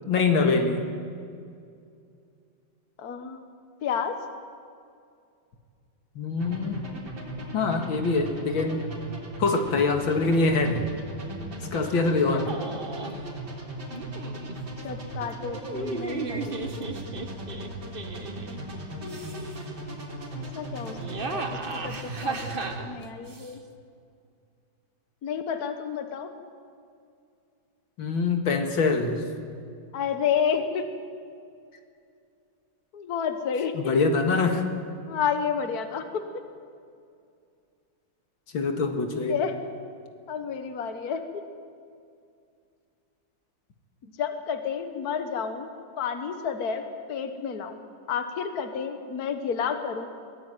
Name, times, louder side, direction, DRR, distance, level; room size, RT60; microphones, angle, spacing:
voice 1, 0.1-0.8 6.2-6.8 7.5-8.9 9.4-10.9 11.7-12.6 28.0-29.2 33.7-34.6 38.5-39.4, left 3 dB, 80° left, 5 dB, 2.6 m, -24 dB
voice 2, 3.0-3.4 3.8-4.2 12.7-12.8 14.8-16.8 19.0-19.5 20.3-21.0 21.2-23.6 25.2-26.3 29.9-30.9 32.9-33.9 35.1-36.4 39.1-39.7 40.3-41.2 44.2-45.7 46.0-46.8 47.1-47.8 48.1-50.1, left 7 dB, 55° left, 7 dB, 1.7 m, -30 dB
sound 1, 6.4-22.8, right 1 dB, 75° right, 4.4 m, -38 dB
sound 2, 12.5-13.2 13.9-14.6 15.4-18.6 19.0-19.7 20.8-23.5, right 3 dB, 30° right, 1.3 m, -35 dB
23.0 x 18.0 x 9.1 m, 2.4 s
omnidirectional pair, 2.1 m